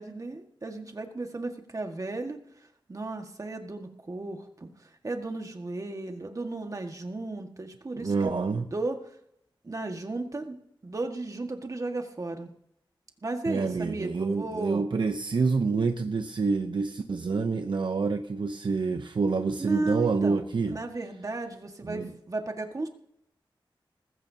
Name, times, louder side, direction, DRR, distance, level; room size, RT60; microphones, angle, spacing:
voice 1, 0.0-2.4 2.9-9.0 9.6-10.6 10.8-12.5 13.2-14.9 19.6-20.4 20.7-22.9, right 2 dB, 40° right, 4 dB, 1.7 m, -35 dB
voice 2, 7.9-8.7 13.5-20.8 21.8-22.1, right 4 dB, 60° right, 6 dB, 0.8 m, -27 dB
19.5 x 15.5 x 2.8 m, 0.73 s
wide cardioid pair, 100°, 9 cm